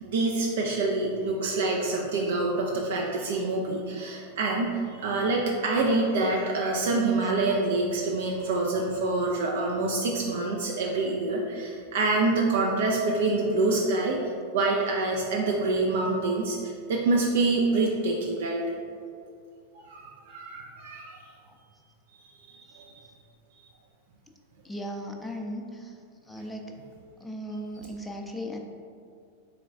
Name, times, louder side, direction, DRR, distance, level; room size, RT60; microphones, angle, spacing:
voice 1, 0.0-14.2 14.5-18.6 19.7-21.2 22.3-22.9, right 3 dB, 55° right, -1 dB, 0.4 m, -26 dB
voice 2, 24.6-25.9 26.3-26.7 27.2-28.6, equal, 5° left, 1 dB, 0.4 m, -37 dB
3.9 x 3.3 x 3.5 m, 2.3 s
figure-of-eight pair, 90°, 0 cm